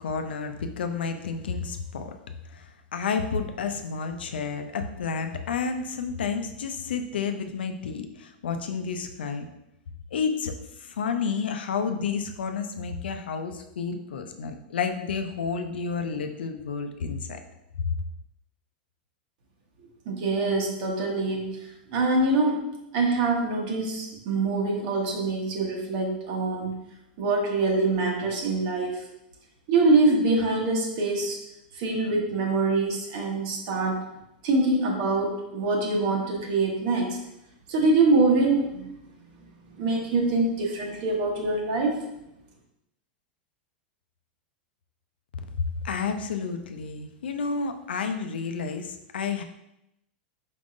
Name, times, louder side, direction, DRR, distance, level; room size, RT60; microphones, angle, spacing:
voice 1, 0.0-2.1 2.5-9.5 10.1-10.5 10.8-17.4 17.8-18.0 45.6-49.4, left 5 dB, 85° left, 7 dB, 0.5 m, -30 dB
voice 2, 20.0-21.6 21.9-22.7 22.9-26.8 27.2-29.0 29.7-31.4 31.7-34.1 34.4-37.2 37.7-38.9 39.2-42.1, right 3 dB, 60° right, 0 dB, 1.3 m, -24 dB
4.9 x 3.6 x 2.5 m, 0.85 s
hypercardioid pair, 110°, 5 cm